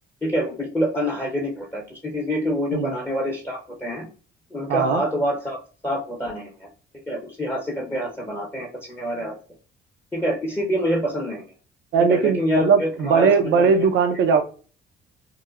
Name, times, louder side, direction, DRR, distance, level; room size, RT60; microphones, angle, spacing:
voice 1, 0.2-4.1 4.5-5.6 5.8-6.7 7.1-9.3 10.1-11.5 12.1-13.8, equal, 10° left, -2 dB, 0.6 m, -26 dB
voice 2, 4.7-5.0 11.9-14.4, right 5 dB, 70° right, 7 dB, 0.5 m, -19 dB
2.9 x 2.0 x 2.3 m, 0.37 s
cardioid pair, 90°, 20 cm